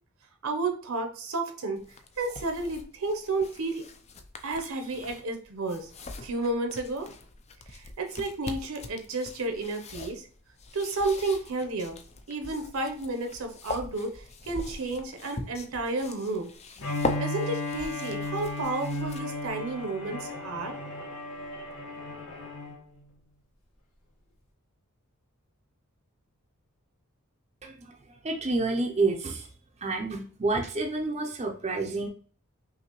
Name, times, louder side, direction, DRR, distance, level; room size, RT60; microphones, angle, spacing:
voice 1, 0.4-1.8 2.2-3.9 4.4-5.9 6.2-7.1 7.7-10.3 10.7-12.0 12.3-16.5 17.2-20.8, right 2 dB, 70° right, 5 dB, 0.8 m, -31 dB
sound 1, 1.8-19.5, left 2 dB, 30° left, 0.4 m, -41 dB
Bowed string instrument, 16.8-22.8, left 2 dB, 90° left, 1.2 m, -35 dB
voice 2, 27.6-29.5 29.8-32.1, right 3 dB, 30° right, 1 dB, 0.5 m, -29 dB
5.7 x 2.7 x 3.0 m, 0.42 s
head